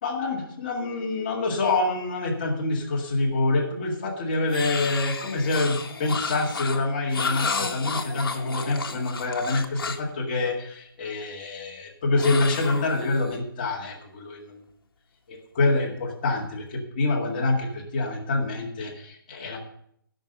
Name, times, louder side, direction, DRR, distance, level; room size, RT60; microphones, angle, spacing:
voice 1, 0.0-14.5 15.3-19.6, left 2 dB, 25° left, -1 dB, 2.0 m, -26 dB
sound 1, 4.5-10.1 12.2-13.4, left 4 dB, 80° left, 1.5 m, -32 dB
14.0 x 6.6 x 5.4 m, 0.70 s
hypercardioid pair, 175°, 12 cm